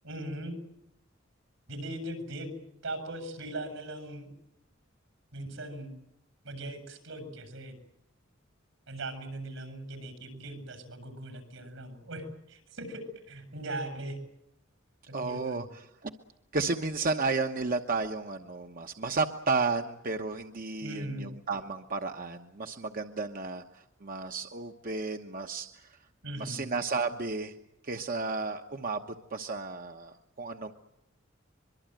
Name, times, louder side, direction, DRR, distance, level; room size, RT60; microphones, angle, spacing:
voice 1, 0.0-0.6 1.7-2.6 2.8-4.3 5.3-5.9 6.4-7.7 8.9-14.2 15.2-15.7 20.8-21.3 26.2-26.7, right 1 dB, 80° right, 8 dB, 7.6 m, -39 dB
voice 2, 15.1-16.1 16.5-25.9 26.4-27.5 27.8-30.7, right 3 dB, 45° right, 5 dB, 1.1 m, -33 dB
24.0 x 23.5 x 9.1 m, 0.83 s
head